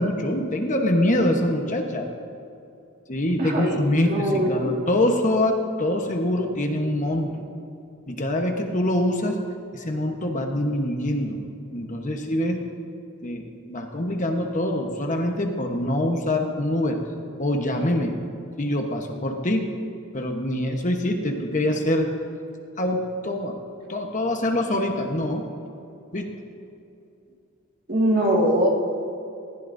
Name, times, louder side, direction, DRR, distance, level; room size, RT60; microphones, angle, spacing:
voice 1, 0.0-2.1 3.1-7.4 8.1-9.4 9.7-11.4 11.7-12.6 13.2-13.4 13.7-17.0 17.4-18.1 18.6-19.7 20.1-22.1 22.8-23.5 23.9-25.4 26.1-26.3, left 1 dB, 35° left, 3 dB, 1.1 m, -24 dB
voice 2, 3.4-4.7 27.9-28.7, right 1 dB, 45° right, -2 dB, 2.1 m, -22 dB
19.5 x 15.0 x 2.7 m, 2.7 s
head